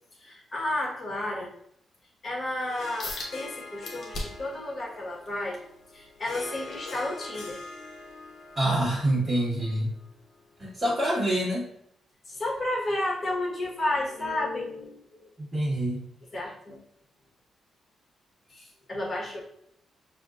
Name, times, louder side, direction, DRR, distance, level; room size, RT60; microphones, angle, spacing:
voice 1, 0.2-1.5 2.2-5.6 5.9-7.6 12.3-15.3 16.3-16.8 18.5-19.4, left 1 dB, 30° left, -2 dB, 1.2 m, -32 dB
Harp, 2.6-11.2, left 3 dB, 65° left, 0.8 m, -44 dB
sound 1, 3.0-3.3 3.8-4.5 5.0-7.6 8.1-8.3 8.9-9.0, left 2 dB, 50° left, 1.1 m, -39 dB
voice 2, 8.5-9.9 10.6-11.7 15.4-16.0, right 1 dB, 25° right, -10 dB, 1.6 m, -26 dB
6.1 x 2.7 x 2.4 m, 0.72 s
cardioid pair, 125°, 0 cm